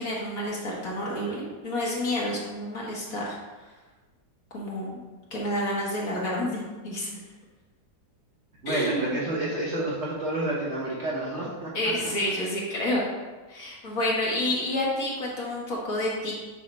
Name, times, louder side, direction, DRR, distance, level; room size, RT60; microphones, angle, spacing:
voice 1, 0.0-3.4 4.5-5.0 5.3-7.1 8.7-9.3 11.7-13.0 13.5-16.3, left 1 dB, 55° left, -4 dB, 1.8 m, -29 dB
voice 2, 8.6-11.7, right 1 dB, 45° right, -6 dB, 1.3 m, -29 dB
7.3 x 2.8 x 5.4 m, 1.3 s
omnidirectional pair, 1.9 m